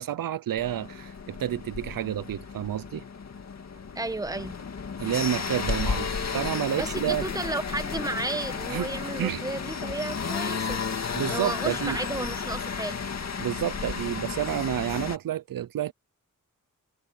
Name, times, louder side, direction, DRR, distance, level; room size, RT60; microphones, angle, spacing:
voice 1, 0.0-3.0 5.0-6.1 6.3-7.2 8.7-8.9 9.2-9.4 11.1-12.0 13.4-15.9, right 11 dB, 90° right, 0.7 m, -29 dB
sound 1, 0.6-15.2, left 5 dB, 50° left, 2.2 m, -33 dB
voice 2, 3.9-4.6 6.7-10.8 11.3-13.0, right 2 dB, 10° right, 1.2 m, -33 dB
wide cardioid pair, 150°, 33 cm